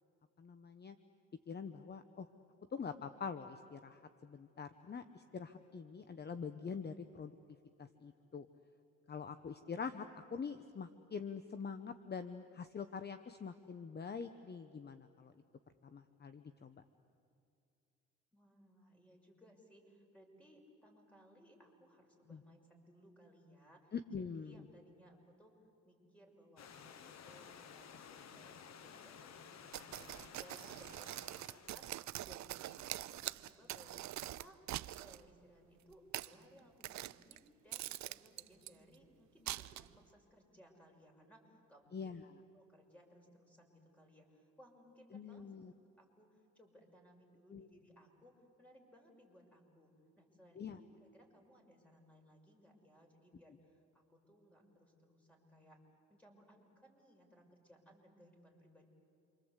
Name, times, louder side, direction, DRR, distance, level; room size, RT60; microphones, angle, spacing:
voice 1, 0.4-1.0 1.5-2.3 2.7-7.4 7.8-8.5 9.1-10.1 10.3-15.3 15.9-16.7 23.9-24.5 41.9-42.2 45.1-45.7 47.5-47.7 50.6-50.8, left 6 dB, 35° left, 10 dB, 1.0 m, -45 dB
voice 2, 18.3-25.5 25.8-42.2 42.5-55.8 56.1-58.9, equal, 5° left, 1 dB, 6.1 m, -63 dB
Stream / Liquid, 26.6-31.9, left 7 dB, 60° left, 1.3 m, -55 dB
sound 1, 29.7-35.2 35.9-36.3 36.8-37.4 37.7-38.7 39.5-40.0, right 14 dB, 65° right, 0.6 m, -44 dB
28.5 x 24.5 x 8.2 m, 2.5 s
cardioid pair, 90°, 30 cm